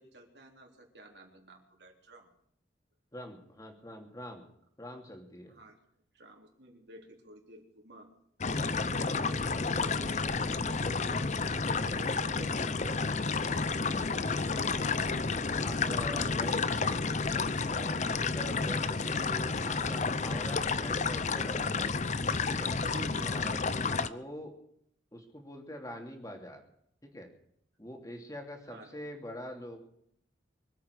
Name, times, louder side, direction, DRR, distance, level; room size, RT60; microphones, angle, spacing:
voice 1, 0.0-2.3 5.5-5.8 6.1-8.1 8.5-11.3 11.7-14.7 16.1-16.6 22.8-23.3 23.9-24.1 28.7-29.0, right 1 dB, 60° right, 2 dB, 3.6 m, -51 dB
voice 2, 3.1-4.5 4.8-5.6 15.6-17.0 17.6-21.9 22.5-22.7 23.2-23.6 24.0-24.5 25.1-26.6 27.1-27.3 27.8-29.8, equal, 20° left, 3 dB, 2.9 m, -44 dB
sound 1, 8.4-24.1, left 4 dB, 40° left, 0.7 m, -31 dB
24.5 x 8.5 x 6.5 m, 0.71 s
head